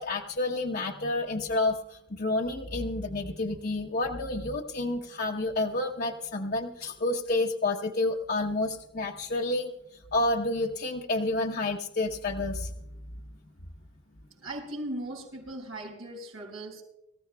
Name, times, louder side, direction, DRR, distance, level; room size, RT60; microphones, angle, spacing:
voice 1, 0.0-9.7 10.1-12.7, left 2 dB, 50° left, -1 dB, 0.9 m, -29 dB
voice 2, 14.4-16.8, right 1 dB, 80° right, -9 dB, 6.1 m, -38 dB
25.5 x 15.0 x 2.3 m, 0.88 s
head